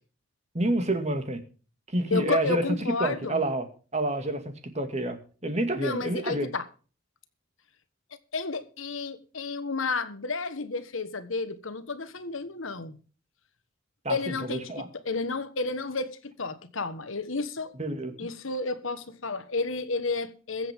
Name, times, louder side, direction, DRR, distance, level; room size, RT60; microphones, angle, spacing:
voice 1, 0.5-1.4 1.9-2.6 3.0-3.7 3.9-4.4 4.7-6.5 14.0-14.9 17.8-18.1, right 1 dB, 35° right, 2.2 m, -28 dB
voice 2, 2.1-3.4 5.8-6.6 8.3-13.0 14.1-17.7 18.2-20.7, left 3 dB, 75° left, 1.4 m, -31 dB
22.5 x 7.8 x 3.6 m
head